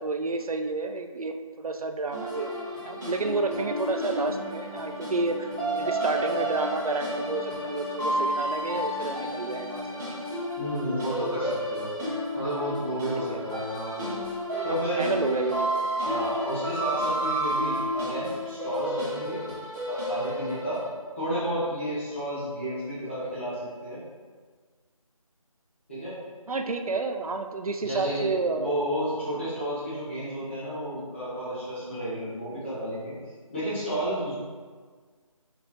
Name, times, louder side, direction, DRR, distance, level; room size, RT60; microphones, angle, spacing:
voice 1, 0.0-2.5 2.8-9.9 13.3-13.4 14.7-15.8 26.5-28.7, right 3 dB, 80° right, 6 dB, 0.5 m, -30 dB
sound 1, 2.1-20.9, equal, 35° right, 1.2 m, -31 dB
voice 2, 10.6-11.9 12.4-14.0 14.6-15.0 16.0-19.4 19.9-20.8 21.2-24.0 25.9-26.2 27.8-33.1 33.5-34.3, equal, 20° left, -12 dB, 0.9 m, -31 dB
4.4 x 3.9 x 2.7 m, 1.5 s
figure-of-eight pair, 165°, 18 cm